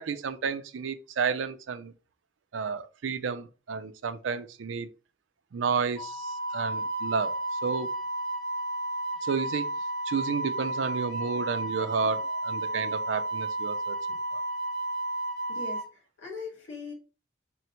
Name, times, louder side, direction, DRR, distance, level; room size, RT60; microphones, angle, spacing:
voice 1, 0.0-1.9 2.5-4.9 5.5-7.9 9.2-9.7 10.1-14.2, right 5 dB, 90° right, 0.4 m, -31 dB
Wind instrument woodwind instrument, 6.0-15.9, right 2 dB, ahead, 0.7 m, -32 dB
voice 2, 15.5-16.9, left 4 dB, 85° left, 1.7 m, -40 dB
3.8 x 2.1 x 4.4 m
head